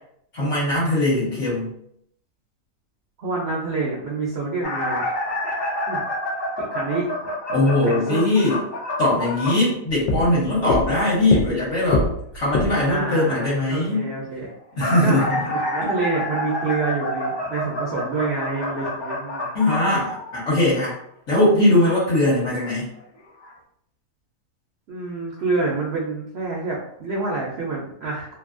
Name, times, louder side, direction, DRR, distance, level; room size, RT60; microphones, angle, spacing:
voice 1, 0.3-1.7 7.5-8.6 9.0-12.1 12.3-14.1 14.8-15.4 19.5-20.9 21.3-22.9, left 1 dB, 55° left, -6 dB, 1.2 m, -20 dB
voice 2, 3.2-5.1 5.9-6.0 6.6-7.1 7.8-8.3 12.9-14.5 15.0-19.5 24.9-28.4, right 3 dB, 65° right, -3 dB, 0.6 m, -27 dB
sound 1, 4.6-9.7 14.5-20.7 21.8-21.9 23.0-23.1 23.4-23.5, left 1 dB, 35° left, 0.4 m, -28 dB
sound 2, 9.9-13.0, left 3 dB, 70° left, 1.0 m, -25 dB
2.7 x 2.6 x 2.5 m, 0.71 s
omnidirectional pair, 1.7 m